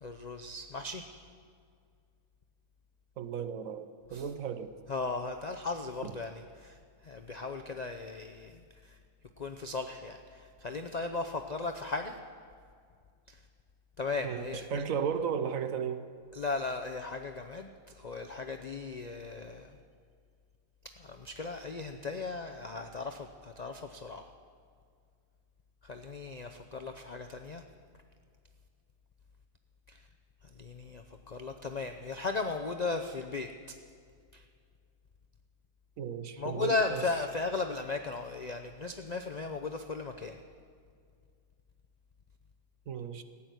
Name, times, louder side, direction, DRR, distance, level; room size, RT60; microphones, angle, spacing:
voice 1, 0.0-1.1 4.1-4.3 4.9-6.8 7.0-9.0 9.4-12.2 13.3-13.4 14.0-14.8 16.3-19.8 20.8-24.3 25.8-27.6 29.9-30.1 30.4-33.8 34.3-34.4 36.4-40.4, left 3 dB, 80° left, 5 dB, 0.3 m, -36 dB
voice 2, 3.2-4.7 6.0-6.1 14.2-16.1 36.0-37.0 42.9-43.2, right 7 dB, 60° right, 10 dB, 1.1 m, -35 dB
15.5 x 8.7 x 9.3 m, 2.2 s
omnidirectional pair, 1.7 m